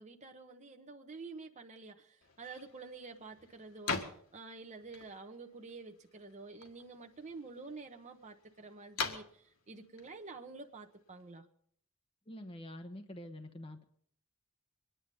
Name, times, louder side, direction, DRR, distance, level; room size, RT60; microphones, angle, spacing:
voice 1, 0.0-11.5, right 3 dB, 35° right, 4 dB, 1.1 m, -49 dB
sound 1, 2.2-11.4, left 4 dB, 75° left, 1.8 m, -45 dB
voice 2, 12.3-13.8, left 1 dB, 25° left, 5 dB, 1.0 m, -46 dB
23.5 x 10.0 x 5.4 m, 0.63 s
head